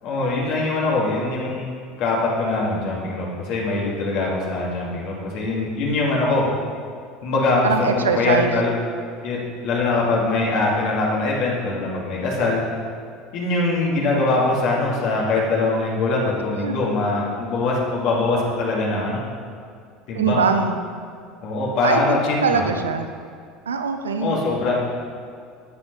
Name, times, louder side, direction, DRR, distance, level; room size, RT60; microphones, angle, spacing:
voice 1, 0.0-6.4 7.2-8.7 9.2-9.4 9.6-12.6 13.3-19.2 20.1-20.4 21.4-22.6 24.2-24.8, left 3 dB, 55° left, -4 dB, 2.3 m, -22 dB
voice 2, 7.6-8.5 16.6-16.7 20.1-20.8 21.8-22.0 22.4-23.1 23.7-24.4, right 5 dB, 80° right, 7 dB, 0.6 m, -22 dB
13.0 x 8.0 x 3.3 m, 2.2 s
figure-of-eight pair, 70°, 0 cm